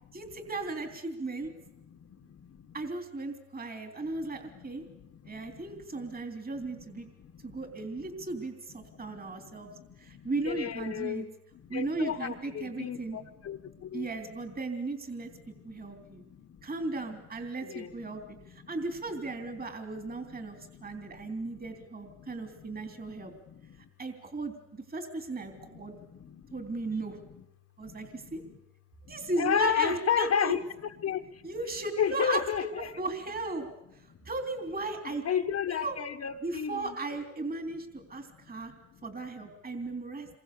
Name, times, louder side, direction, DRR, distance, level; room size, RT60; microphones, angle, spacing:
voice 1, 0.1-1.5 2.7-4.8 5.2-7.1 7.4-9.7 10.0-11.3 11.7-13.2 13.9-15.3 15.6-16.2 16.6-20.6 20.8-23.3 23.7-25.9 26.5-27.2 27.8-28.4 29.0-30.6 31.4-32.4 33.0-33.7 33.9-35.2 35.7-36.0 36.4-38.7 39.0-40.3, right 3 dB, 30° right, 3.4 m, -36 dB
voice 2, 1.9-2.8 4.2-6.1 6.9-7.6 8.8-11.2 11.5-14.1 15.3-16.7 17.6-18.7 20.1-21.6 22.2-23.9 25.5-27.4 27.8-28.6 29.1-30.6 31.0-31.5 32.0-32.9 34.2-34.3 35.2-37.0 38.4-38.6 38.9-39.0, left 8 dB, 55° left, 1.4 m, -35 dB
27.5 x 23.0 x 7.0 m
cardioid pair, 90°, 30 cm